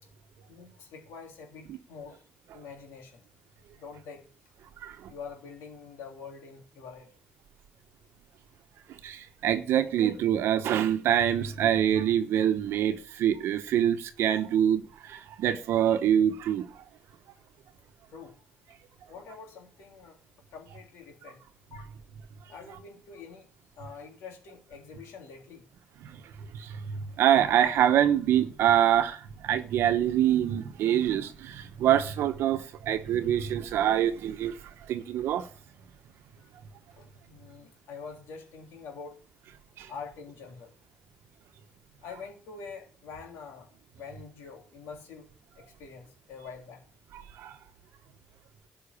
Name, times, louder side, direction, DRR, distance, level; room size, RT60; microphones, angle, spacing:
voice 1, 0.5-2.2 2.5-3.2 3.7-4.3 5.1-7.1 18.1-18.3 19.1-20.2 20.5-21.4 21.7-22.0 22.5-23.5 23.8-25.7 36.4-36.5 37.0-39.2 39.9-40.7 42.0-43.7 43.9-45.3 45.6-46.8, left 5 dB, 80° left, 3.3 m, -45 dB
voice 2, 9.0-16.8 26.0-26.2 26.5-34.6 34.9-35.5 39.8-39.9 47.1-47.5, right 10 dB, 75° right, 1.0 m, -25 dB
12.0 x 5.7 x 8.6 m
supercardioid pair, 70°, 4 cm